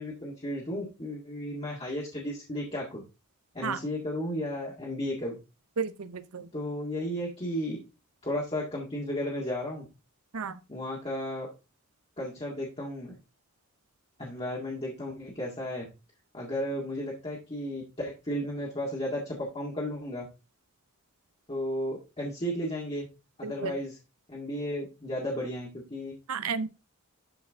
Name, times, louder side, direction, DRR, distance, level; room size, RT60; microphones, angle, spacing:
voice 1, 0.0-3.0 3.5-5.4 6.5-7.8 8.2-9.9 10.7-11.5 12.2-13.1 14.2-15.9 16.3-20.3 21.5-23.1 23.4-23.9 24.3-26.1, equal, 25° left, 1.9 m, -34 dB
voice 2, 5.8-6.5 10.3-10.6 23.4-23.8 26.3-26.7, right 5 dB, 80° right, 0.7 m, -33 dB
11.5 x 4.8 x 3.6 m
head